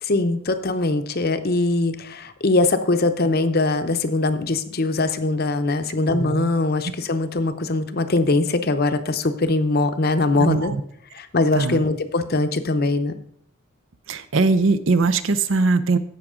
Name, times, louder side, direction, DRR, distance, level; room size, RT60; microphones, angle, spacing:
voice 1, 0.0-10.7 11.1-13.2, left 2 dB, 45° left, 10 dB, 0.7 m, -22 dB
voice 2, 6.1-6.5 10.4-10.8 11.5-11.8 14.1-16.0, right 3 dB, 60° right, 14 dB, 0.6 m, -20 dB
15.5 x 5.9 x 3.7 m, 0.64 s
head